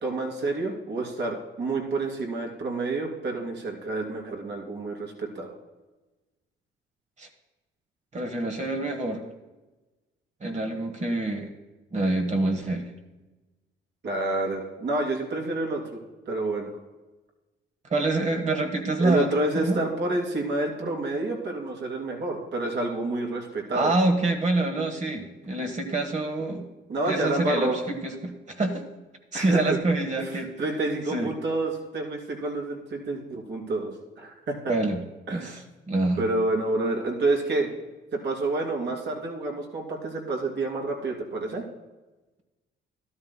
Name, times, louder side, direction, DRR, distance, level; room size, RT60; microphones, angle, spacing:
voice 1, 0.0-5.5 14.0-16.0 16.3-16.7 19.0-23.9 26.9-27.8 29.3-29.8 30.2-34.6 35.3-35.6 36.2-37.7 38.2-41.6, right 2 dB, 60° right, 0 dB, 2.7 m, -28 dB
voice 2, 8.1-9.2 10.4-11.5 11.9-12.9 17.9-19.8 23.7-26.7 27.0-28.9 29.3-30.6 31.1-31.3 34.7-35.0 35.3-36.2, right 2 dB, 35° right, 4 dB, 1.2 m, -26 dB
12.5 x 12.5 x 2.2 m, 1.1 s
cardioid pair, 90°, 20 cm